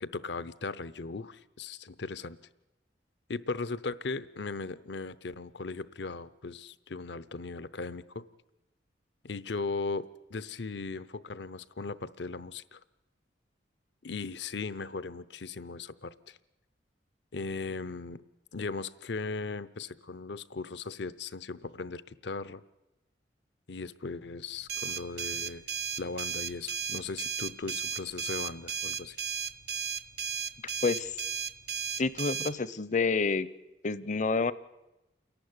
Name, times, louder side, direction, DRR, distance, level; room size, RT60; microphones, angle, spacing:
voice 1, 0.0-2.4 3.3-8.2 9.2-12.8 14.0-16.4 17.3-18.2 18.5-22.6 23.7-25.6 26.0-29.2, left 4 dB, 75° left, 17 dB, 0.8 m, -38 dB
sound 1, 24.7-32.5, right 7 dB, 60° right, 0.8 m, -34 dB
voice 2, 30.8-31.2 32.0-33.5 33.8-34.5, left 4 dB, 40° left, 18 dB, 0.7 m, -28 dB
28.5 x 11.5 x 9.7 m, 0.98 s
head